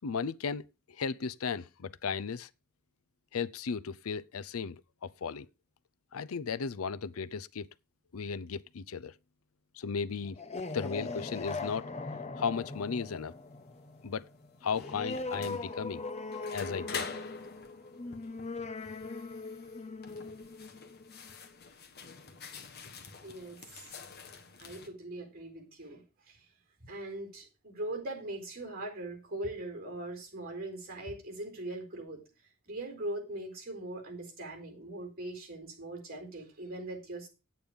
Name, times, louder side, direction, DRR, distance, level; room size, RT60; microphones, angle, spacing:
voice 1, 0.0-2.5 3.3-5.5 6.1-7.7 8.1-9.1 9.8-10.4 10.7-11.9 12.4-13.3 14.0-14.2 14.6-16.0 16.5-17.1, left 5 dB, 85° left, 0.6 m, -35 dB
sound 1, 10.2-21.5, left 3 dB, 30° left, 0.9 m, -40 dB
sound 2, 12.5-24.9, left 5 dB, 50° left, 1.5 m, -47 dB
voice 2, 23.2-24.0 24.6-26.5 26.9-32.2 32.7-37.3, right 1 dB, 45° right, 4.2 m, -41 dB
9.6 x 8.7 x 5.2 m
head